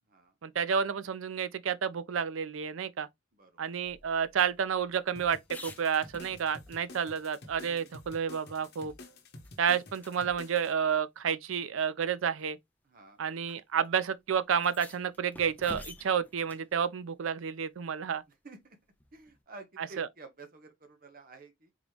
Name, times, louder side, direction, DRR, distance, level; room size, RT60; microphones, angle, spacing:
voice 1, 0.4-3.1 3.6-8.9 9.6-12.6 13.2-18.2 20.0-20.1, right 7 dB, 85° right, 0.5 m, -30 dB
sound 1, 3.9-6.8 7.2-7.3 7.7-9.1 9.4-9.6 10.0-10.1 11.2-11.3 12.2-12.5 13.5-13.6 13.8-13.9 14.5-16.7 19.0-19.4, left 2 dB, 10° left, 0.5 m, -50 dB
sound 2, 5.2-10.7, left 2 dB, 55° left, 0.9 m, -50 dB
voice 2, 7.6-7.9 12.8-13.2 18.4-18.8 19.1-21.7, right 3 dB, 45° right, 0.8 m, -51 dB
3.8 x 2.9 x 3.2 m
head